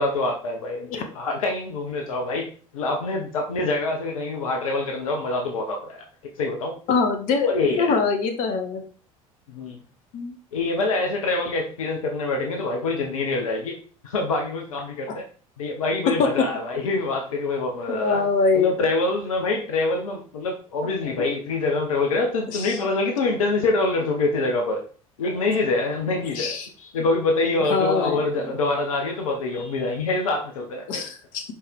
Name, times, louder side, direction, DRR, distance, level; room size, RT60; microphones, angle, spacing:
voice 1, 0.0-6.0 6.4-6.8 7.5-7.9 9.5-9.8 10.5-13.8 14.0-15.2 15.6-18.2 18.5-24.8 25.2-31.0, left 2 dB, 70° left, 2 dB, 1.1 m, -25 dB
voice 2, 6.9-8.8 10.1-10.3 15.1-15.2 17.9-18.7 21.0-21.1 22.5-22.7 26.2-26.7 27.7-28.2 30.9-31.4, left 4 dB, 50° left, 5 dB, 1.4 m, -24 dB
5.2 x 5.0 x 4.5 m, 0.42 s
figure-of-eight pair, 65°, 18 cm